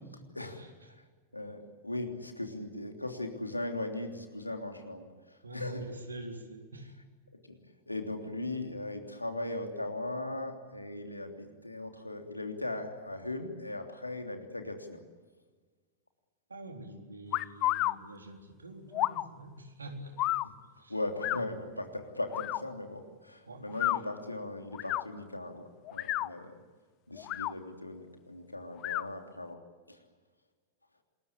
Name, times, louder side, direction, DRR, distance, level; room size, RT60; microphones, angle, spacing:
voice 1, 0.3-1.0 1.3-5.8 7.4-7.6 7.9-15.0 20.4-20.5 20.9-26.6 27.1-29.6 29.9-30.0, left 2 dB, 85° left, 5 dB, 3.2 m, -38 dB
voice 2, 5.4-6.9 16.5-20.2 20.8-21.0 23.5-23.6, right 1 dB, 75° right, 4 dB, 4.0 m, -45 dB
sound 1, 17.3-17.9 18.9-19.2 20.2-20.5 21.2-21.4 22.3-22.6 23.7-24.0 24.7-25.0 25.9-26.3 27.2-27.5 28.8-29.0, left 16 dB, 35° left, 0.8 m, -30 dB
28.0 x 21.5 x 8.9 m, 1.4 s
figure-of-eight pair, 90°, 0 cm